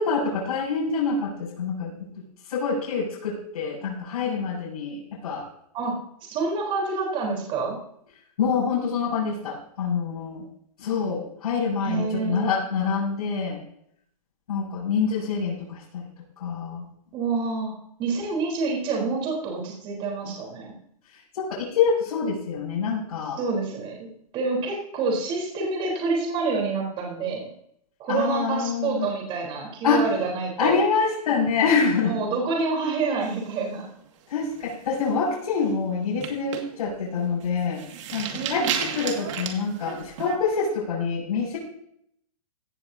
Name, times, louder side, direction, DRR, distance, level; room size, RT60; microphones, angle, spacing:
voice 1, 0.0-2.1 2.5-5.5 8.4-10.5 10.8-13.6 14.5-16.0 16.4-16.8 21.3-23.4 28.1-29.1 29.8-30.1 30.6-32.1 34.3-37.8 38.1-41.6, left 5 dB, 70° left, -6 dB, 6.7 m, -26 dB
voice 2, 6.3-7.8 11.8-12.5 17.1-20.7 23.4-27.5 28.0-30.8 32.1-33.9 38.3-38.7, right 4 dB, 25° right, -1 dB, 4.1 m, -27 dB
sound 1, 33.2-34.1 34.5-34.8 35.1-35.4 36.0-40.4, right 8 dB, 50° right, 2.2 m, -33 dB
16.5 x 14.0 x 2.9 m, 0.70 s
hypercardioid pair, 155°, 19 cm